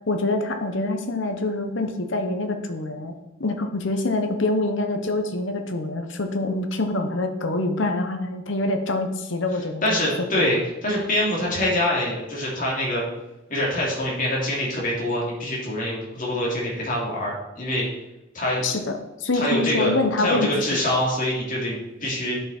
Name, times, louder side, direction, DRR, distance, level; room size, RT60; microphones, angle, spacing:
voice 1, 0.1-3.1 3.4-10.0 10.3-10.6 18.6-20.8, left 2 dB, 65° left, 6 dB, 1.0 m, -25 dB
voice 2, 9.8-13.0 13.5-17.9 18.3-18.6 19.3-19.9 20.2-22.3, left 1 dB, 40° left, -4 dB, 3.1 m, -25 dB
10.5 x 5.9 x 4.4 m, 0.99 s
head